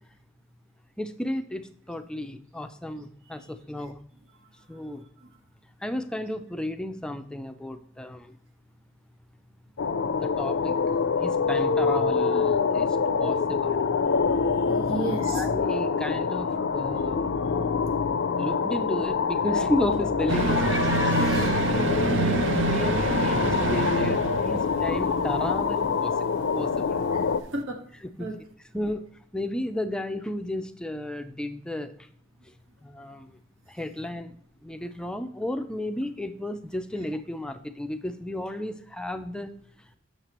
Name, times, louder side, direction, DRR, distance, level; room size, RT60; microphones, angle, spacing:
voice 1, 1.0-4.0 4.7-5.0 5.8-8.3 10.2-10.8 11.2-12.9 13.2-13.8 14.9-17.3 18.4-20.8 21.1-21.4 22.2-22.4 22.7-26.1 26.5-27.0 28.0-28.3 28.7-29.0 29.3-31.9 32.8-33.3 33.7-34.3 34.6-39.5, left 1 dB, 5° left, 8 dB, 0.3 m, -33 dB
sound 1, 9.8-27.4, left 5 dB, 70° left, 0.5 m, -25 dB
voice 2, 14.6-15.4 20.5-21.8 27.1-27.2 27.5-27.8 28.2-28.4, right 1 dB, 90° right, 3 dB, 1.5 m, -33 dB
sound 2, 20.3-25.3 25.6-25.7, right 3 dB, 65° right, 0.5 m, -27 dB
8.0 x 6.6 x 2.9 m, 0.63 s
head